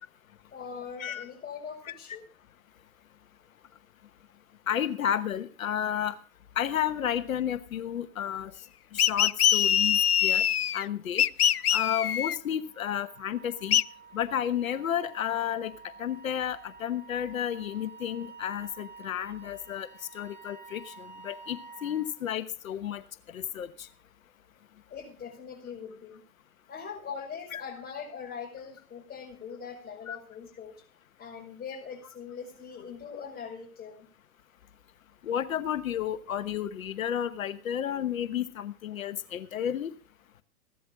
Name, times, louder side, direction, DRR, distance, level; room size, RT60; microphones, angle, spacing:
voice 1, 0.5-2.2 24.9-26.2 26.7-30.8 31.2-34.1, left 6 dB, 20° left, 0 dB, 5.9 m, -41 dB
voice 2, 4.7-6.2 6.6-8.5 8.9-10.4 10.7-11.2 11.7-13.8 14.1-15.7 16.0-19.9 20.1-23.0 23.3-23.9 27.5-27.6 30.1-30.2 35.2-39.9, left 10 dB, 65° left, 13 dB, 1.2 m, -32 dB
sound 1, 9.0-10.8 11.2-12.4 13.7-13.8, left 9 dB, 85° left, 0.6 m, -23 dB
Wind instrument woodwind instrument, 12.6-22.1, right 5 dB, 70° right, 7.6 m, -50 dB
16.0 x 12.5 x 3.8 m, 0.38 s
figure-of-eight pair, 110°, 44 cm